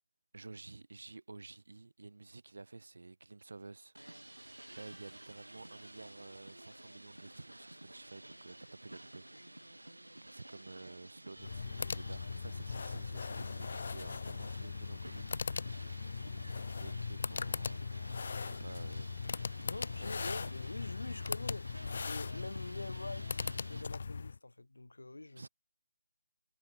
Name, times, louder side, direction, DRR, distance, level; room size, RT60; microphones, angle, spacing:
voice 1, 0.3-4.3 4.8-16.5 16.8-17.8 18.3-19.3 25.4-25.5, right 3 dB, 65° right, 0.9 m, -52 dB
sound 1, 3.9-23.8, right 1 dB, 85° right, 2.8 m, -52 dB
sound 2, 11.4-24.4, left 5 dB, 50° left, 0.5 m, -39 dB
Bowed string instrument, 17.0-22.3, left 8 dB, 35° left, 3.8 m, -72 dB
voice 2, 19.7-25.4, left 2 dB, 75° left, 2.7 m, -46 dB
figure-of-eight pair, 150°, 0 cm